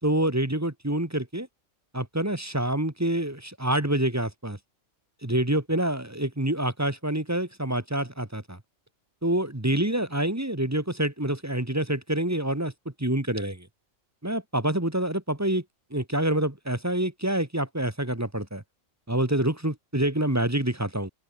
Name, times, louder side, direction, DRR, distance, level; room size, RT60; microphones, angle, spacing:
voice 1, 0.0-1.5 1.9-4.6 5.2-8.6 9.2-12.7 13.0-13.7 14.2-15.6 15.9-18.6 19.1-21.1, right 1 dB, 10° right, 1.8 m, -27 dB
open air
omnidirectional pair, 1.4 m